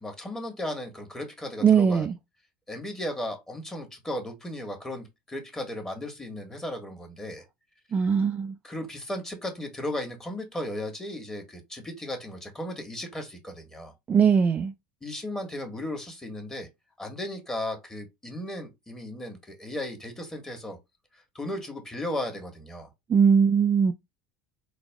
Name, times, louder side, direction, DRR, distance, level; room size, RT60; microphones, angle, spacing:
voice 1, 0.0-2.1 2.7-7.4 8.6-13.9 15.0-16.7 17.0-20.8 21.3-22.9, left 1 dB, 10° left, 1.5 m, -35 dB
voice 2, 1.6-2.1 7.9-8.6 14.1-14.7 23.1-23.9, right 6 dB, 30° right, 0.4 m, -20 dB
4.0 x 2.3 x 3.5 m
supercardioid pair, 95°, 5 cm